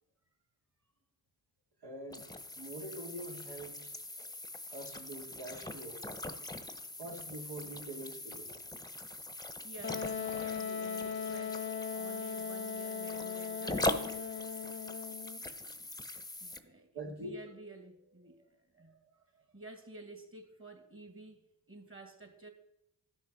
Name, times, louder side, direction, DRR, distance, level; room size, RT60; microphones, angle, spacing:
voice 1, 1.8-2.2 2.6-4.3 4.7-6.0 7.0-8.5 16.9-17.3, right 1 dB, 70° right, 2.6 m, -45 dB
sound 1, 2.1-16.6, left 1 dB, 10° left, 1.0 m, -41 dB
voice 2, 9.6-14.1 15.4-15.9 16.4-22.5, right 2 dB, 30° right, 2.5 m, -52 dB
Wind instrument woodwind instrument, 9.8-15.4, left 6 dB, 30° left, 0.7 m, -39 dB
12.0 x 6.2 x 6.1 m
supercardioid pair, 40°, 41 cm